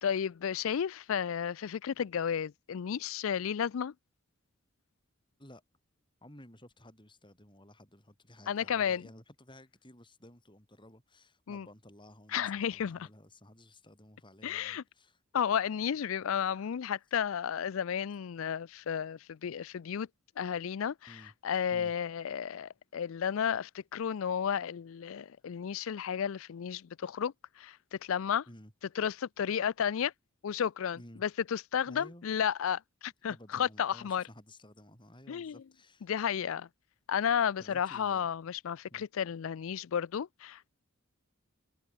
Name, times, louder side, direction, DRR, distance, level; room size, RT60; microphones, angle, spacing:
voice 1, 0.0-3.9 8.5-9.0 11.5-11.7 12.3-13.1 14.4-14.8 15.3-20.1 20.4-28.4 29.0-30.1 30.4-34.2 35.3-35.6 36.0-36.7 37.1-40.7, left 8 dB, 65° left, 0.4 m, -33 dB
voice 2, 6.2-15.2 21.1-21.3 21.7-21.9 28.5-28.7 30.9-31.2 31.9-32.3 33.2-36.1 37.6-38.3 38.9-39.0, left 1 dB, 20° left, 7.7 m, -54 dB
head